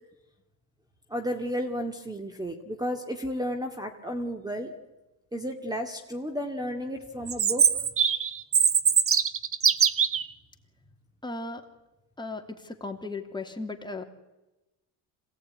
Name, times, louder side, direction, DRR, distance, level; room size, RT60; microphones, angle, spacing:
voice 1, 1.1-4.8 5.3-7.7, equal, 10° right, 6 dB, 2.3 m, -32 dB
Chirp tweet, 7.3-10.3, right 7 dB, 30° right, 1.2 m, -22 dB
voice 2, 11.2-11.6 12.2-14.0, left 3 dB, 10° left, 3 dB, 3.0 m, -36 dB
26.5 x 18.0 x 9.8 m, 1.0 s
cardioid pair, 110°, 41 cm